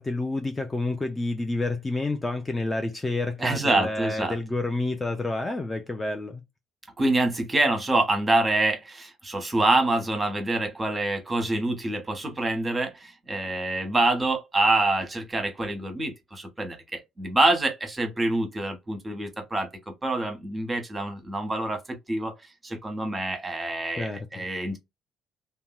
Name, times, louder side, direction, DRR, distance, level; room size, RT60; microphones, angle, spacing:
voice 1, 0.0-6.4 24.0-24.4, left 2 dB, 15° left, 0.4 m, -29 dB
voice 2, 3.4-4.4 7.0-22.3 22.6-24.8, right 2 dB, 20° right, 1.0 m, -26 dB
2.7 x 2.2 x 2.2 m
figure-of-eight pair, 50°, 0 cm